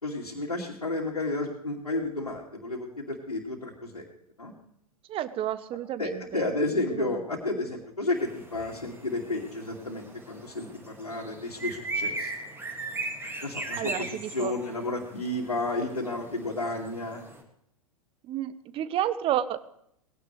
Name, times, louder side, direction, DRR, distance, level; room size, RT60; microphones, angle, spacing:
voice 1, 0.0-4.0 4.4-4.5 6.0-12.3 13.4-17.2, left 2 dB, 85° left, -5 dB, 2.6 m, -32 dB
voice 2, 5.1-6.5 6.9-7.2 13.8-14.5 18.2-19.6, right 11 dB, 30° right, 14 dB, 1.0 m, -31 dB
sound 1, 8.1-17.4, right 2 dB, 10° right, 2.3 m, -38 dB
20.0 x 16.5 x 3.4 m, 0.72 s
figure-of-eight pair, 100°, 19 cm